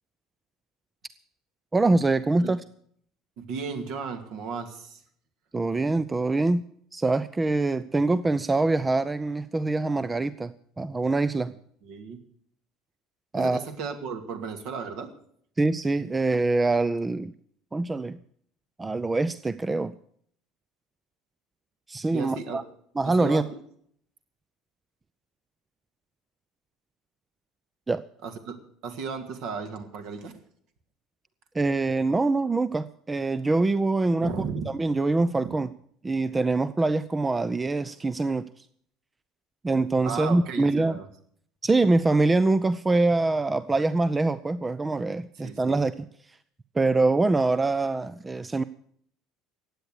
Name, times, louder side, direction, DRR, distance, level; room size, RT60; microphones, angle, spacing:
voice 1, 1.7-2.6 5.5-6.6 6.9-11.5 13.3-13.6 15.6-17.3 17.7-18.2 18.8-20.0 21.9-22.6 23.0-23.4 27.9-28.0 31.5-34.3 34.7-35.7 36.0-38.7 39.6-41.0 41.6-46.4 46.7-48.6, right 3 dB, 15° right, 17 dB, 0.5 m, -24 dB
voice 2, 3.4-5.0 11.8-12.2 13.4-15.1 22.1-22.6 23.2-23.5 28.2-30.4 34.2-34.7 35.4-35.5 40.0-41.1 45.4-45.8, right 5 dB, 55° right, 7 dB, 2.2 m, -35 dB
16.0 x 9.8 x 6.5 m, 0.63 s
figure-of-eight pair, 65°, 0 cm